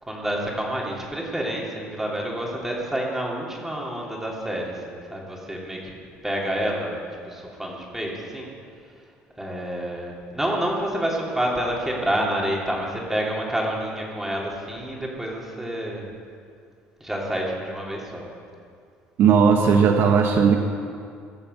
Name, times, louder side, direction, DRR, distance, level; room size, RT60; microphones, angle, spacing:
voice 1, 0.0-5.9 6.2-8.5 9.0-9.1 9.4-16.1 17.0-18.3, right 1 dB, 5° right, -3 dB, 3.1 m, -28 dB
voice 2, 19.2-20.6, right 6 dB, 65° right, 3 dB, 1.2 m, -17 dB
18.5 x 7.0 x 8.0 m, 2.3 s
cardioid pair, 120°, 4 cm